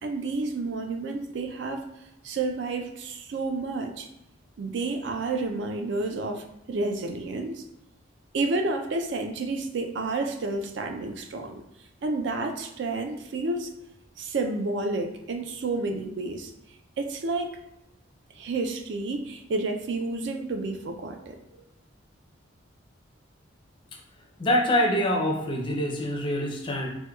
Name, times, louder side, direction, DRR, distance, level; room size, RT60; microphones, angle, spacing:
voice 1, 0.0-1.9 2.2-4.1 4.6-7.6 8.3-11.6 12.0-13.7 14.2-16.5 17.0-17.5 18.3-21.4, right 3 dB, 65° right, 4 dB, 0.4 m, -30 dB
voice 2, 24.4-26.9, equal, 25° left, 0 dB, 0.4 m, -25 dB
4.4 x 2.1 x 2.2 m, 0.88 s
head